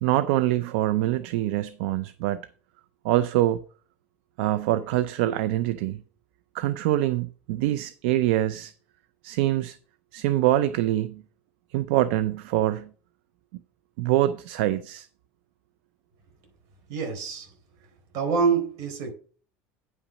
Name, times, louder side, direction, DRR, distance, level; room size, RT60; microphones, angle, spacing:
voice 1, 0.0-2.5 3.0-3.6 4.4-6.0 6.5-8.7 9.2-9.8 10.1-11.2 11.7-12.9 14.0-15.1, right 14 dB, 80° right, 0.5 m, -24 dB
voice 2, 16.9-17.5 18.1-19.1, right 5 dB, 65° right, 4.2 m, -26 dB
9.5 x 5.8 x 5.3 m
supercardioid pair, 105°, 6 cm